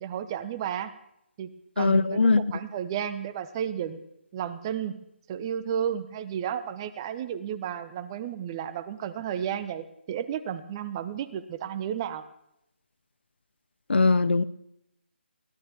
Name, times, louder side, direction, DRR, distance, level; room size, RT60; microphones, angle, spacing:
voice 1, 0.0-0.9 1.4-4.0 4.3-5.0 5.3-12.2, right 9 dB, 25° right, 13 dB, 0.9 m, -32 dB
voice 2, 1.8-2.4 13.9-14.4, left 3 dB, 65° left, 17 dB, 0.8 m, -21 dB
22.0 x 16.0 x 3.6 m, 0.79 s
figure-of-eight pair, 150°, 6 cm